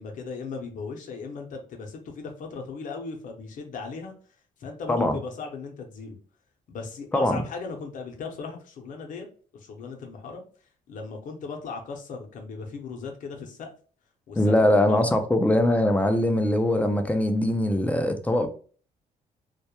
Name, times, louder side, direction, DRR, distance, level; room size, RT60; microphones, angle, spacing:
voice 1, 0.0-4.1 4.6-6.2 6.7-9.3 9.5-10.4 10.9-13.7 14.3-15.1, left 4 dB, 60° left, 0.6 m, -37 dB
voice 2, 4.9-5.2 7.1-7.4 14.4-18.5, left 1 dB, 10° left, 0.3 m, -22 dB
2.2 x 2.0 x 2.8 m
cardioid pair, 120°, 15 cm